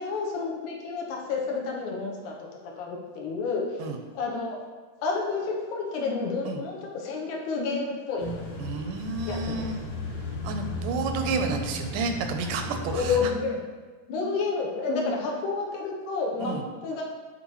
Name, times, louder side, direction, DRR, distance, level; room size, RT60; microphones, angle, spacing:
voice 1, 0.0-2.4 2.6-4.6 5.0-8.3 9.3-9.6 12.9-13.6 14.1-16.6 16.8-17.0, left 4 dB, 80° left, -1 dB, 2.4 m, -30 dB
sound 1, 8.2-13.3, left 2 dB, 55° left, 2.5 m, -35 dB
voice 2, 8.6-9.8 10.4-13.2 16.4-16.6, right 4 dB, 85° right, 5 dB, 2.2 m, -30 dB
9.2 x 4.4 x 3.1 m, 1.4 s
omnidirectional pair, 3.7 m